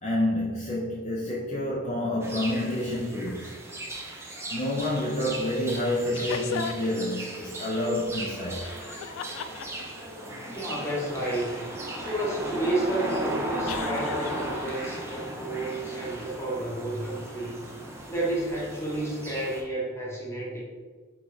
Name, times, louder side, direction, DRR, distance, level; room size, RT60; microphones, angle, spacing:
voice 1, 0.0-3.5 4.5-8.7, left 1 dB, 35° left, -5 dB, 0.6 m, -28 dB
sound 1, 2.2-19.6, right 1 dB, 15° right, 0.6 m, -36 dB
sound 2, 6.1-7.0 8.6-10.0 13.6-14.8, left 6 dB, 85° left, 0.3 m, -37 dB
voice 2, 10.5-11.5 12.0-17.6 18.1-20.6, right 1 dB, 15° left, -4 dB, 1.0 m, -31 dB
3.7 x 3.1 x 3.8 m, 1.5 s
head